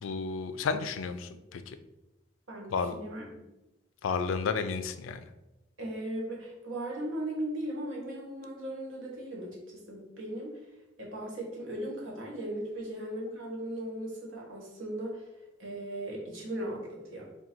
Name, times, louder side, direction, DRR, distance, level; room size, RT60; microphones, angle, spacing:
voice 1, 0.0-1.8 2.7-3.0 4.0-5.3, left 5 dB, 90° left, 10 dB, 0.4 m, -32 dB
voice 2, 2.5-3.2 5.8-10.5 11.0-15.3 15.6-17.3, right 1 dB, 90° right, -2 dB, 1.3 m, -37 dB
3.7 x 2.2 x 4.4 m, 0.97 s
head